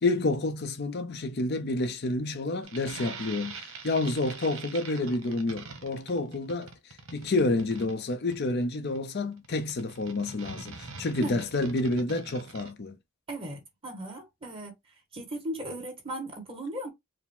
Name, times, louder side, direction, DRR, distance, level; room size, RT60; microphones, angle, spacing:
voice 1, 0.0-13.0, left 2 dB, 50° left, 0.5 m, -29 dB
sound 1, 2.6-12.7, right 5 dB, 75° right, 1.0 m, -44 dB
voice 2, 13.3-14.7 15.1-16.9, right 1 dB, 25° right, 1.6 m, -37 dB
4.7 x 2.0 x 3.6 m
head